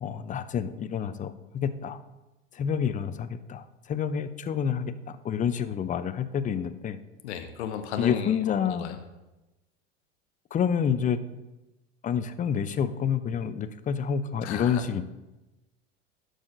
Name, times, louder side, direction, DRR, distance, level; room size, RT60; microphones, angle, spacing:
voice 1, 0.0-2.0 2.5-7.0 8.0-8.9 10.5-11.2 12.0-15.0, left 7 dB, 25° left, 12 dB, 0.5 m, -28 dB
voice 2, 7.2-9.0 14.4-15.0, left 9 dB, 75° left, 7 dB, 0.8 m, -35 dB
12.0 x 6.4 x 2.6 m, 1.0 s
hypercardioid pair, 85°, 34 cm